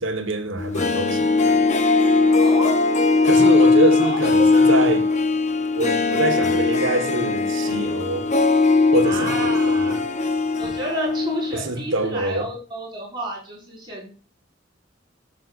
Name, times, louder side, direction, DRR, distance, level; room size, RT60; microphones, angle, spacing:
voice 1, 0.0-1.6 3.2-5.0 5.7-8.3 8.9-10.0 10.6-10.7 11.5-12.5, right 2 dB, 75° right, 1.6 m, -25 dB
Harp, 0.6-11.6 11.9-12.0, left 3 dB, 35° left, 0.8 m, -19 dB
voice 2, 2.3-2.8 3.3-4.2 4.5-4.6 9.0-10.0 10.6-14.1, right 1 dB, 25° right, 5.8 m, -31 dB
12.5 x 7.7 x 2.6 m
head